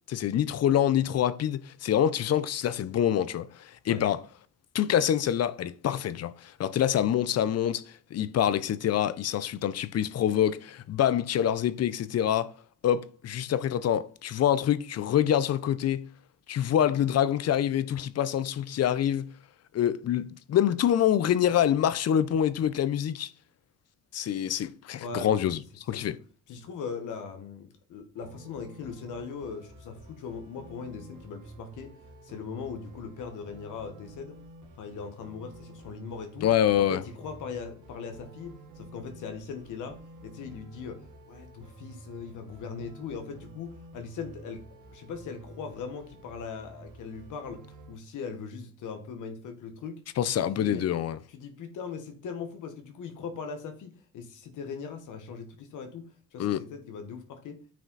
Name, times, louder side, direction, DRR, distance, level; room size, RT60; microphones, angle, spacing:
voice 1, 0.1-4.2 4.7-12.5 12.8-16.1 16.5-19.3 19.7-23.3 24.1-25.6 25.9-26.2 36.4-37.0 50.2-51.2 56.4-56.6, left 10 dB, 55° left, 0.7 m, -26 dB
voice 2, 25.0-25.5 25.9-26.2 26.5-31.9 32.2-34.4 34.8-36.5 36.7-44.6 44.9-50.0 50.5-50.8 51.3-56.1 56.3-57.6, left 5 dB, 80° left, 1.4 m, -40 dB
sound 1, 28.2-48.0, right 2 dB, 80° right, 2.1 m, -50 dB
9.3 x 5.0 x 4.0 m
cardioid pair, 90°, 30 cm